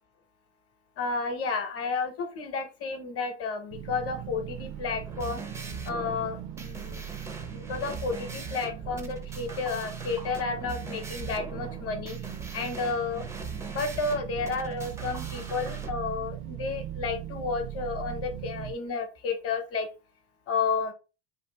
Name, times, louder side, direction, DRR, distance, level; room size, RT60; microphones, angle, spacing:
voice 1, 1.0-5.5 5.8-7.1 7.5-12.2 12.5-13.3 13.7-19.9 20.5-20.9, left 4 dB, 35° left, 7 dB, 0.9 m, -31 dB
sound 1, 3.7-18.7, right 11 dB, 75° right, 0.5 m, -39 dB
sound 2, 5.0-15.9, right 3 dB, 10° right, 0.4 m, -42 dB
2.8 x 2.3 x 3.3 m, 0.31 s
supercardioid pair, 120°, 38 cm